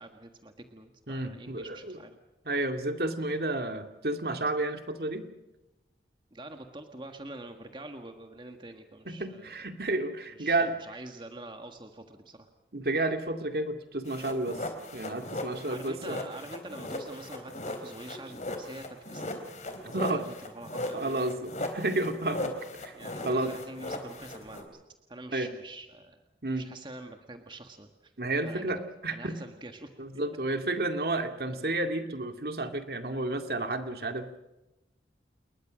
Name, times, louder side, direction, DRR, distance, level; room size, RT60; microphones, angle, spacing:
voice 1, 0.0-2.2 6.3-9.7 10.3-12.5 15.7-19.4 19.7-21.2 22.9-24.8 25.1-26.2 26.6-28.1 28.4-28.7 29.1-29.9, right 2 dB, 25° right, 5 dB, 1.6 m, -45 dB
voice 2, 1.1-2.0 2.5-5.2 9.1-10.8 12.7-14.6 14.9-16.2 19.9-20.2 20.9-22.5 22.8-22.9 23.2-23.5 25.3-25.5 26.4-26.7 28.2-29.3 30.0-34.4, right 2 dB, 55° right, 6 dB, 2.2 m, -31 dB
sound 1, 14.1-24.6, left 2 dB, 40° left, 3.8 m, -38 dB
29.0 x 22.0 x 6.3 m, 0.97 s
head